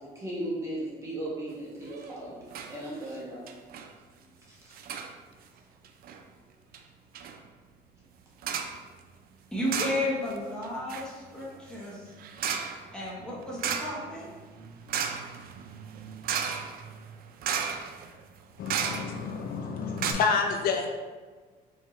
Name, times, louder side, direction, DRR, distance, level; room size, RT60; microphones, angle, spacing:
voice 1, 0.0-2.4 2.7-3.5 4.5-4.7, right 1 dB, 15° right, -6 dB, 1.4 m, -36 dB
sound 1, 1.9-2.2 2.5-2.7 3.0-3.1 3.5-3.9 4.7-5.1 5.8-6.2 6.7-6.8 7.1-7.4 8.4-8.8 9.7-10.4 10.6-19.4 19.7-19.8 20.0-20.1, right 7 dB, 60° right, 0.4 m, -34 dB
voice 2, 9.5-12.1 12.9-14.3, left 1 dB, 5° left, -6 dB, 1.4 m, -33 dB
voice 3, 18.6-20.9, left 5 dB, 60° left, 4 dB, 0.4 m, -29 dB
4.6 x 2.9 x 3.1 m, 1.4 s
cardioid pair, 110°, 17 cm